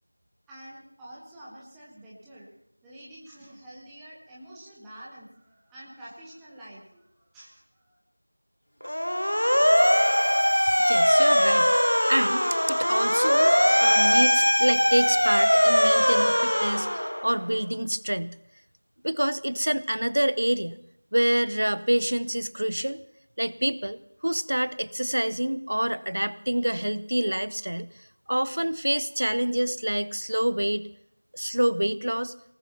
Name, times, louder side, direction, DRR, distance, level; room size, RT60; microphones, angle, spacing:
voice 1, 0.5-2.5 2.8-8.0, right 1 dB, ahead, -8 dB, 0.6 m, -47 dB
Motor vehicle (road) / Siren, 8.8-17.4, equal, 80° left, 0.5 m, -21 dB
voice 2, 10.9-11.7 12.0-18.3 19.0-20.8 21.1-23.0 23.4-27.9 28.3-30.9 31.3-32.3, right 1 dB, 45° right, 17 dB, 0.5 m, -27 dB
24.0 x 19.0 x 3.0 m, 0.78 s
figure-of-eight pair, 180°, 0 cm